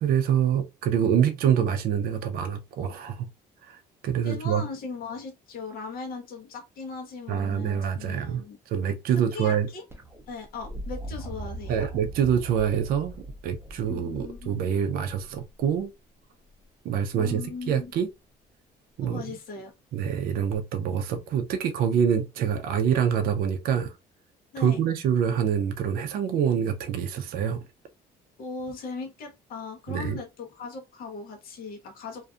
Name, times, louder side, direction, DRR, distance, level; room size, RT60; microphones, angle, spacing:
voice 1, 0.0-3.3 3.6-4.6 7.3-9.7 11.7-13.1 13.4-15.9 16.8-18.1 19.0-19.2 19.9-23.9 24.6-27.6 29.9-30.2, right 8 dB, 60° right, 0.4 m, -26 dB
voice 2, 4.2-8.6 9.3-9.8 10.3-11.9 13.9-14.8 17.1-17.9 19.0-19.7 24.5-24.8 28.4-32.3, left 4 dB, 60° left, 0.9 m, -38 dB
sound 1, 9.9-15.8 17.4-17.9 20.5-20.6, right 1 dB, 15° right, 0.6 m, -40 dB
2.5 x 2.4 x 2.3 m
cardioid pair, 110°, 17 cm